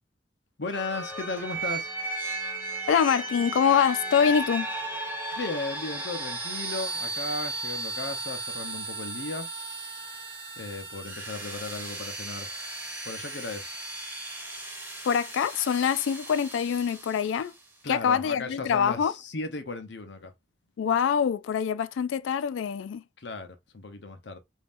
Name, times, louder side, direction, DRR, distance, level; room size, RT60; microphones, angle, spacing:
voice 1, 0.6-1.9 5.4-9.5 10.6-12.5 13.0-13.7 17.8-20.3 23.2-24.4, left 3 dB, 65° left, 0.8 m, -36 dB
sound 1, 0.7-17.4, right 2 dB, 10° right, 1.7 m, -35 dB
voice 2, 2.9-4.7 15.0-17.5 17.9-19.1 20.8-23.0, left 7 dB, 85° left, 0.3 m, -25 dB
5.3 x 2.8 x 2.5 m
head